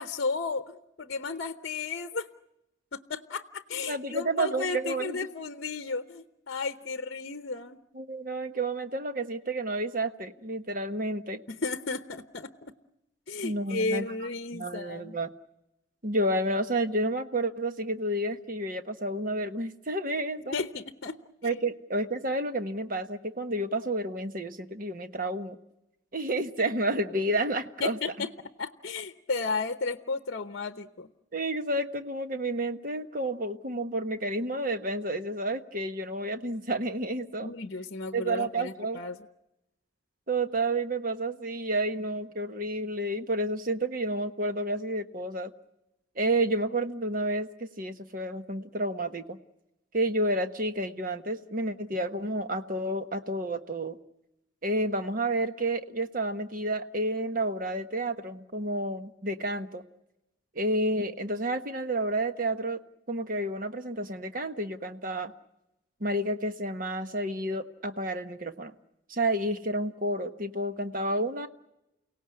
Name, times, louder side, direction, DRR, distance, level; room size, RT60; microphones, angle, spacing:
voice 1, 0.0-2.3 2.9-7.8 11.5-12.7 13.3-15.2 20.5-21.6 27.8-28.3 28.6-31.1 37.4-39.2, left 4 dB, 55° left, 10 dB, 0.9 m, -34 dB
voice 2, 3.9-5.2 7.9-11.4 13.4-14.1 14.5-15.3 16.0-20.6 21.4-25.6 26.1-28.3 31.3-37.5 38.1-39.0 40.3-45.5 46.2-49.4 49.9-54.0 54.6-59.8 60.5-62.8 63.1-65.3 66.0-68.7 69.1-71.5, right 1 dB, 40° right, 8 dB, 1.3 m, -30 dB
29.5 x 17.5 x 9.7 m, 0.92 s
head